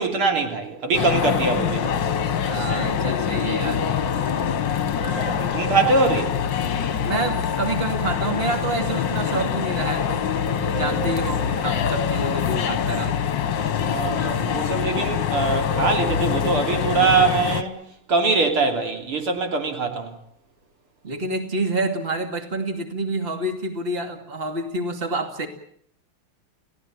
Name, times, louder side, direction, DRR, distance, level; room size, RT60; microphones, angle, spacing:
voice 1, 0.0-2.1 5.0-6.3 13.8-20.1, right 4 dB, 80° right, 5 dB, 4.1 m, -23 dB
sound 1, 0.9-17.6, left 7 dB, 60° left, 1.8 m, -24 dB
voice 2, 2.4-3.8 7.0-13.2 21.0-25.5, right 2 dB, 25° right, 7 dB, 2.5 m, -28 dB
29.5 x 17.5 x 8.7 m, 0.67 s
omnidirectional pair, 2.4 m